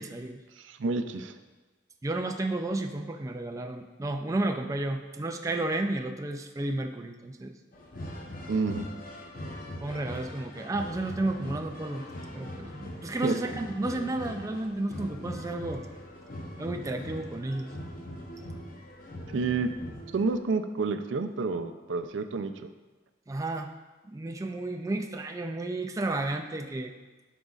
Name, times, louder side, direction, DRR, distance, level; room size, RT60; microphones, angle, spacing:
voice 1, 0.0-0.4 2.0-7.5 9.8-12.1 12.3-15.9 16.6-17.7 23.3-23.7 24.0-26.9, right 2 dB, 15° right, 4 dB, 0.3 m, -32 dB
voice 2, 0.6-1.3 8.5-8.9 13.2-13.4 19.3-19.7 20.1-22.5, right 4 dB, 85° right, 9 dB, 0.5 m, -29 dB
sound 1, 7.7-20.4, left 1 dB, 50° left, 0.8 m, -41 dB
12.0 x 5.0 x 2.4 m, 1.2 s
head